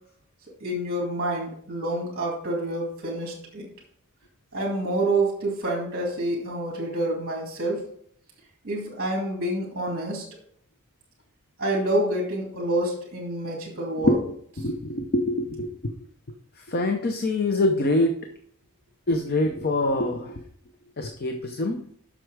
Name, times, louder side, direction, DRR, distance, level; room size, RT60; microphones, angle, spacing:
voice 1, 0.6-3.7 4.5-7.9 8.6-10.3 11.6-14.2, right 1 dB, 45° right, -2 dB, 2.2 m, -27 dB
voice 2, 14.6-15.9 16.6-18.1 19.1-20.4 21.0-21.8, left 2 dB, 45° left, 5 dB, 0.6 m, -25 dB
7.9 x 6.1 x 4.7 m, 0.64 s
head